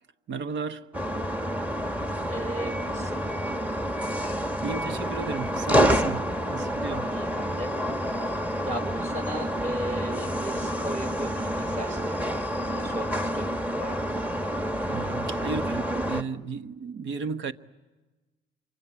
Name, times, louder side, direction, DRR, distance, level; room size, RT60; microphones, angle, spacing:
voice 1, 0.3-0.9 4.1-7.2 14.9-17.5, right 5 dB, 65° right, 1.2 m, -34 dB
sound 1, 0.9-16.2, equal, 5° right, 1.3 m, -28 dB
voice 2, 2.2-3.3 7.1-7.7 8.2-14.2, right 1 dB, 35° right, 4.7 m, -36 dB
27.0 x 24.5 x 8.8 m
cardioid pair, 90°, 20 cm